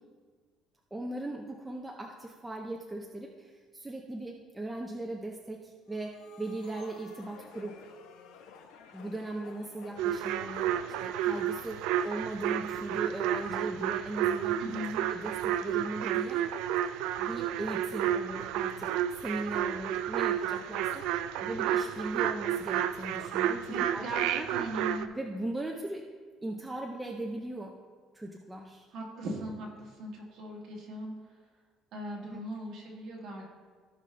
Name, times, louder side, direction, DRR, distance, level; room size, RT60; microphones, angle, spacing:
voice 1, 0.9-7.7 8.9-14.6 15.0-16.4 17.2-24.0 24.4-24.5 25.1-26.0 26.4-27.7 28.1-28.9 32.2-32.4, right 2 dB, 5° right, 0 dB, 0.5 m, -39 dB
sound 1, 5.9-18.9 19.5-23.1, left 6 dB, 80° left, 0.9 m, -55 dB
sound 2, 10.0-25.1, right 10 dB, 80° right, 0.4 m, -31 dB
voice 2, 14.6-15.0 23.7-25.1 28.9-31.1 31.9-33.4, right 1 dB, 45° right, -2 dB, 1.9 m, -39 dB
15.5 x 5.4 x 3.2 m, 1.5 s
cardioid pair, 180°, 0 cm